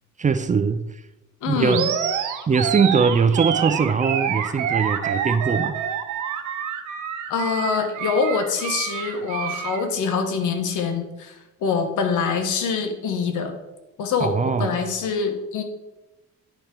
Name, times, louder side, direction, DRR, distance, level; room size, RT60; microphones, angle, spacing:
voice 1, 0.2-0.8 1.5-1.8 2.5-5.7 14.2-14.8, right 5 dB, 25° right, 11 dB, 0.4 m, -21 dB
voice 2, 1.4-1.9 7.3-13.5 14.0-15.6, left 5 dB, 80° left, 6 dB, 1.2 m, -25 dB
Animal, 1.7-9.8, right 8 dB, 80° right, 0.8 m, -27 dB
10.0 x 3.5 x 4.4 m, 1.0 s
cardioid pair, 90°, 30 cm